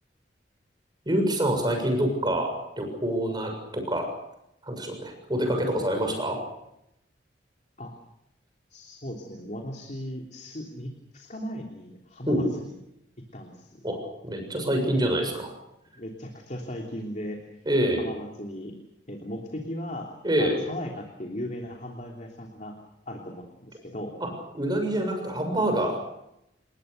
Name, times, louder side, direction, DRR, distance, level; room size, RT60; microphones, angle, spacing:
voice 1, 1.1-4.1 4.6-6.4 12.3-12.4 13.8-15.5 17.7-18.0 20.2-20.6 24.2-26.0, right 1 dB, 25° right, 4 dB, 6.9 m, -26 dB
voice 2, 8.7-12.7 13.3-13.8 15.9-17.4 18.0-18.7 19.1-20.1 20.4-22.8 23.1-24.1, equal, 45° left, 2 dB, 3.2 m, -37 dB
29.5 x 20.5 x 6.8 m, 0.82 s
head